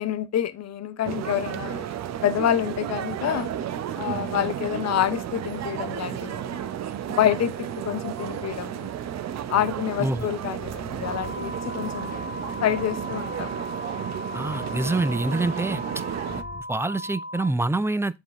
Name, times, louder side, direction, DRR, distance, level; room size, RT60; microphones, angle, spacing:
voice 1, 0.0-1.9 2.2-3.5 4.0-6.6 7.1-8.9 9.5-12.1 12.6-13.6, left 10 dB, 60° left, 0.8 m, -27 dB
sound 1, 1.0-16.4, right 10 dB, 60° right, 0.7 m, -33 dB
sound 2, 10.6-16.6, left 5 dB, 30° left, 0.9 m, -46 dB
sound 3, 11.0-17.5, equal, 25° right, 1.8 m, -37 dB
voice 2, 14.3-15.8 16.7-18.2, right 2 dB, 10° right, 0.4 m, -25 dB
7.4 x 3.6 x 3.5 m
cardioid pair, 90°, 30 cm